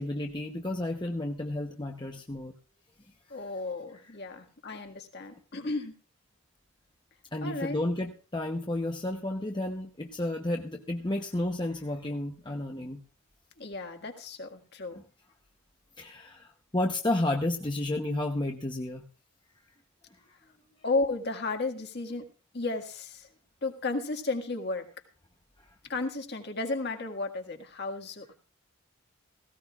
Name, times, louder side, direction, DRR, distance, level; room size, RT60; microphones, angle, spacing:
voice 1, 0.0-2.5 3.4-3.5 4.7-4.8 7.3-13.0 14.9-15.0 16.0-19.0 25.6-25.7, left 1 dB, 20° left, 2 dB, 0.8 m, -32 dB
voice 2, 3.3-5.9 7.4-7.8 13.6-15.0 20.8-22.3 22.5-23.3 23.6-24.9 25.9-28.3, left 3 dB, 50° left, 5 dB, 1.8 m, -33 dB
17.5 x 16.5 x 2.4 m, 0.35 s
head